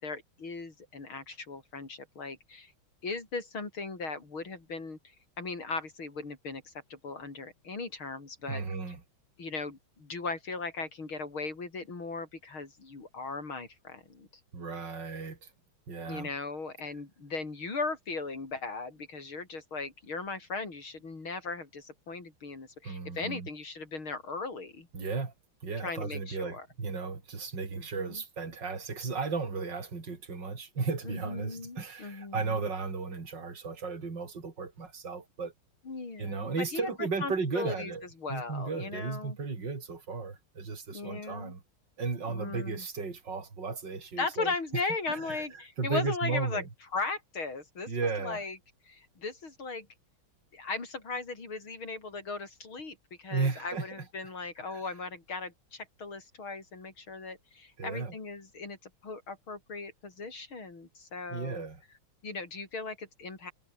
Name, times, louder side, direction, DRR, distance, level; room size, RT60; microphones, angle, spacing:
voice 1, 0.0-2.7 3.0-8.6 9.4-14.3 16.1-24.9 25.8-26.7 27.8-28.2 31.0-32.7 35.9-37.9 38.2-39.4 40.9-41.5 42.3-42.9 44.2-46.6 46.9-47.9 48.2-48.6 48.9-49.9 50.5-58.8 59.0-61.6 62.2-63.5, left 3 dB, 75° left, 5.7 m, -38 dB
voice 2, 8.5-9.0 14.5-15.5 15.9-16.3 22.8-23.5 24.9-25.3 25.6-35.5 36.2-41.6 42.0-44.8 45.1-45.5 45.8-46.7 47.9-48.5 53.3-54.0 54.7-54.8 57.8-58.1 61.3-61.8, right 4 dB, 55° right, 4.3 m, -35 dB
omnidirectional pair, 2.3 m